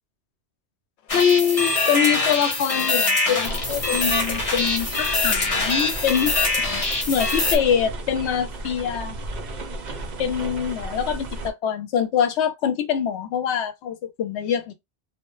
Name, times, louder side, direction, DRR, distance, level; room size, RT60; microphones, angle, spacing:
voice 1, 1.1-9.2 10.2-14.7, left 8 dB, 85° left, 0.9 m, -24 dB
sound 1, 1.1-7.6, left 3 dB, 40° left, 0.6 m, -23 dB
sound 2, 3.4-11.5, right 2 dB, 55° right, 0.5 m, -34 dB
2.1 x 2.1 x 2.9 m
omnidirectional pair, 1.1 m